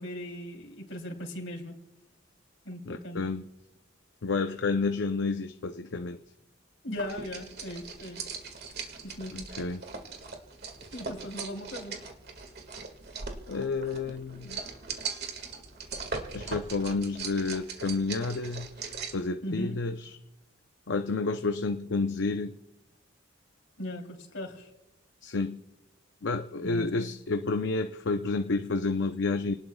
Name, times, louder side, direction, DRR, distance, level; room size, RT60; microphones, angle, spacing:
voice 1, 0.0-1.7 2.6-3.2 6.8-8.3 9.0-9.4 10.9-12.0 19.4-19.8 23.8-24.7 26.6-27.1, left 1 dB, 75° left, 2 dB, 3.2 m, -38 dB
voice 2, 2.9-3.5 4.2-6.2 9.3-9.8 13.5-14.6 16.3-18.7 19.1-20.2 20.9-22.6 25.2-25.6 26.2-29.5, left 3 dB, 60° left, 7 dB, 0.6 m, -30 dB
sound 1, 7.0-19.3, right 4 dB, 55° right, 1.8 m, -40 dB
29.5 x 19.0 x 2.3 m, 0.97 s
head